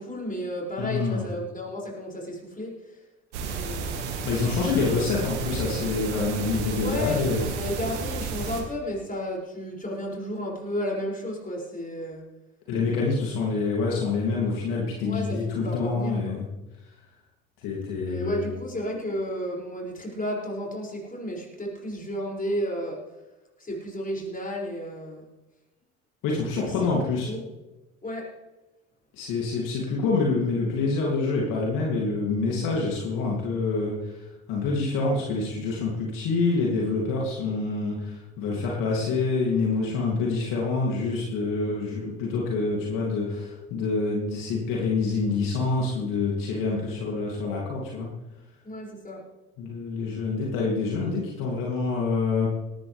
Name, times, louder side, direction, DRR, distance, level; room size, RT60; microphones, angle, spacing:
voice 1, 0.0-3.0 3.4-4.3 4.9-5.2 6.8-12.2 15.0-16.4 18.0-23.0 23.6-25.2 26.5-26.7 27.3-27.4 28.0-28.3 48.6-49.2, equal, 25° left, -3 dB, 6.6 m, -33 dB
voice 2, 0.8-1.2 4.2-7.4 12.7-16.4 17.6-18.5 26.2-27.3 29.2-34.2 34.5-48.1 49.6-52.5, left 4 dB, 65° left, -3 dB, 3.0 m, -26 dB
sound 1, 3.3-8.6, right 4 dB, 80° right, 2.0 m, -32 dB
19.0 x 13.5 x 3.5 m, 1.1 s
hypercardioid pair, 60°, 34 cm